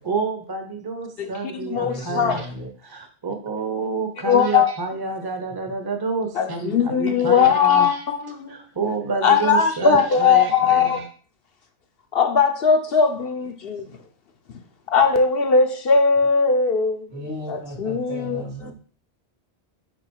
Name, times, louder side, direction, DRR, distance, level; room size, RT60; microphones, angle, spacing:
voice 1, 0.0-2.5 2.8-8.0 8.5-11.1, right 4 dB, 25° right, 5 dB, 0.9 m, -28 dB
voice 2, 1.2-2.4 4.2-4.7 6.4-8.5 9.2-11.0 12.1-13.8 14.5-14.6 14.9-17.1 17.5-18.7, left 6 dB, 65° left, 6 dB, 1.0 m, -19 dB
voice 3, 1.7-2.7 17.1-18.7, right 1 dB, 70° right, -2 dB, 2.8 m, -34 dB
5.5 x 5.1 x 4.6 m, 0.41 s
omnidirectional pair, 1.1 m